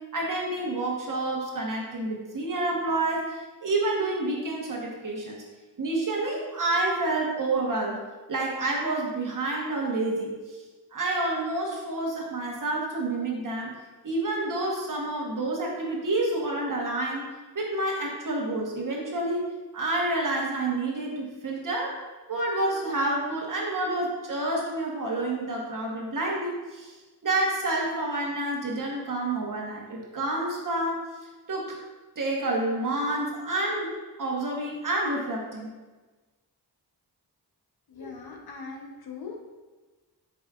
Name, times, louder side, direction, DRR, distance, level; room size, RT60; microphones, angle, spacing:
voice 1, 0.1-5.4 5.8-8.0 8.3-10.6 10.9-13.7 14.0-17.3 17.5-19.5 19.7-22.0 22.3-26.9 27.2-31.0 31.5-31.7 32.2-33.9 34.2-35.7, right 2 dB, 50° right, -2 dB, 1.1 m, -28 dB
voice 2, 37.9-39.4, left 4 dB, 65° left, 1 dB, 0.8 m, -40 dB
4.9 x 4.1 x 2.4 m, 1.2 s
cardioid pair, 60°, 41 cm